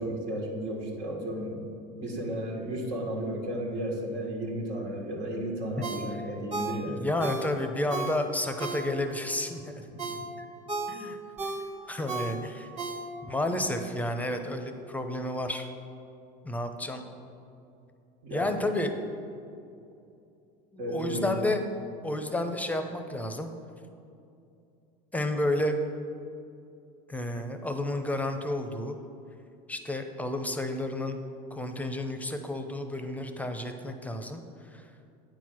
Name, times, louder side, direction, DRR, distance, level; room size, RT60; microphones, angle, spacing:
voice 1, 0.0-1.6 2.0-7.0 10.0-10.2 18.2-18.6 20.8-21.3, right 1 dB, 65° right, -1 dB, 1.7 m, -33 dB
Ringtone, 5.8-9.3 9.7-13.4 13.8-13.9, right 3 dB, 30° right, 1.0 m, -36 dB
voice 2, 6.9-9.8 10.9-11.2 11.9-12.7 13.2-15.7 16.4-17.0 18.3-18.9 20.7-21.6 22.0-23.5 25.1-25.8 27.1-29.0 29.7-31.2 31.5-34.9, left 1 dB, 5° left, 6 dB, 0.7 m, -31 dB
9.0 x 4.6 x 6.2 m, 2.6 s
supercardioid pair, 105°, 21 cm